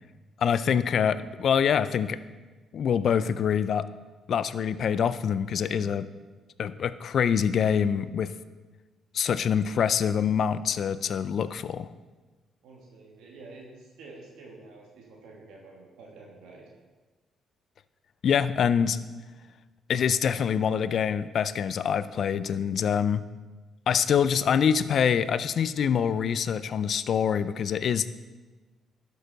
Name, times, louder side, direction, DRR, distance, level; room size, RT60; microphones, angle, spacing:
voice 1, 0.4-2.2 2.7-3.9 4.3-6.1 6.6-8.3 9.1-11.9 18.2-19.0 19.9-23.2 23.9-28.1, left 7 dB, 60° left, 14 dB, 0.4 m, -25 dB
voice 2, 12.6-16.7, right 3 dB, 85° right, -2 dB, 1.7 m, -48 dB
12.0 x 6.6 x 4.0 m, 1.3 s
cardioid pair, 90°, 0 cm